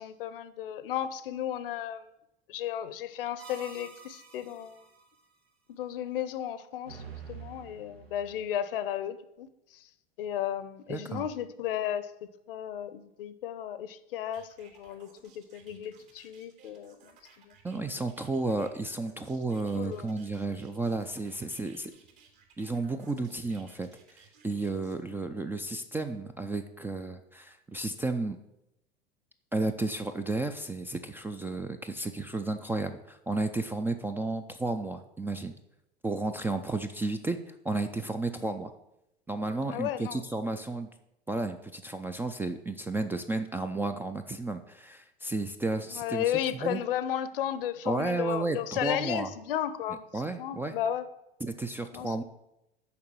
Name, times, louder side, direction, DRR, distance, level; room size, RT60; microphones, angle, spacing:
voice 1, 0.0-2.0 2.5-4.8 5.7-7.0 7.3-9.9 10.2-12.1 12.5-17.5 19.7-20.1 39.7-40.2 45.9-51.1 51.9-52.2, left 10 dB, 65° left, 14 dB, 0.8 m, -34 dB
sound 1, 3.4-5.0 6.8-8.4, right 6 dB, 85° right, 1.3 m, -47 dB
voice 2, 10.9-11.3 17.6-21.9 22.6-23.9 24.2-28.4 29.5-35.5 36.0-38.7 39.3-40.9 41.3-46.2 46.6-46.8 47.9-49.3 50.1-50.8 51.4-52.2, right 2 dB, 5° right, 7 dB, 0.3 m, -32 dB
sound 2, 14.3-25.0, right 6 dB, 60° right, 2.5 m, -58 dB
6.8 x 5.1 x 6.8 m, 0.86 s
figure-of-eight pair, 85°, 30 cm